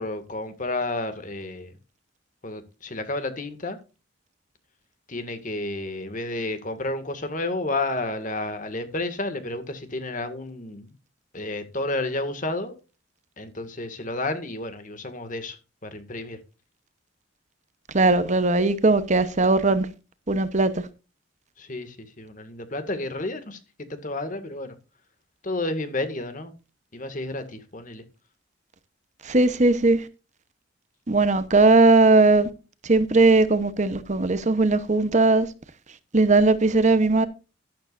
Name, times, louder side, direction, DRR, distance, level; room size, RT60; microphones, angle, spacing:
voice 1, 0.0-1.7 2.4-3.8 5.1-10.9 11.3-12.7 13.4-16.4 21.6-24.8 25.4-26.5 26.9-28.0, left 2 dB, 40° left, 2.0 m, -31 dB
voice 2, 17.9-19.9 20.3-20.7 29.2-30.0 31.1-32.5 32.9-35.5 36.1-37.3, right 3 dB, 35° right, 0.9 m, -18 dB
12.5 x 12.0 x 2.6 m
head